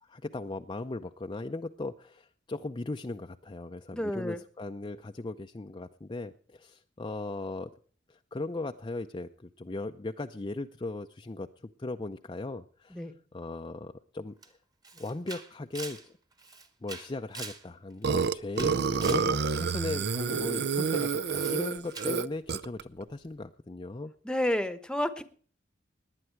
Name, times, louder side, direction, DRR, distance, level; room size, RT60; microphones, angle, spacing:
voice 1, 0.0-7.7 8.1-11.5 11.8-14.6 14.9-16.2 16.8-24.1, left 2 dB, 25° left, 6 dB, 0.5 m, -38 dB
voice 2, 3.9-4.4 12.9-13.2 24.2-25.2, left 1 dB, 5° left, 12 dB, 1.0 m, -30 dB
Camera, 14.4-14.5 14.8-17.7 18.0-19.3 21.3-21.6 21.9-22.2, right 3 dB, 20° right, 1.6 m, -43 dB
Burping eructation, 18.0-22.8, right 5 dB, 60° right, 0.6 m, -28 dB
19.5 x 9.9 x 4.6 m, 0.43 s
head